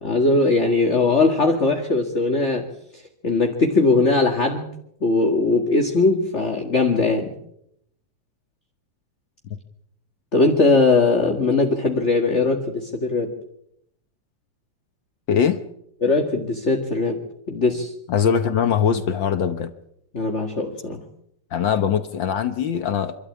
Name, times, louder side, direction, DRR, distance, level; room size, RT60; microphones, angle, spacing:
voice 1, 0.0-2.7 2.9-4.7 5.0-7.3 10.3-13.3 16.0-17.2 17.5-17.9 20.1-21.0, left 3 dB, 30° left, 3 dB, 1.5 m, -20 dB
voice 2, 15.3-15.6 18.1-19.7 21.5-23.2, left 7 dB, 65° left, 10 dB, 1.2 m, -21 dB
27.0 x 13.0 x 8.5 m, 0.76 s
omnidirectional pair, 3.4 m